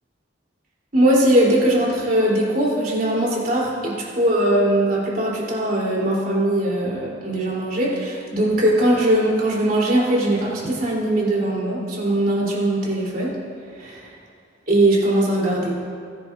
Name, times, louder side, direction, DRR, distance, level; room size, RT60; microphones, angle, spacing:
voice 1, 0.9-13.3 13.8-14.0 14.7-15.8, right 1 dB, 50° right, -5 dB, 3.4 m, -20 dB
19.5 x 11.0 x 2.6 m, 2.3 s
head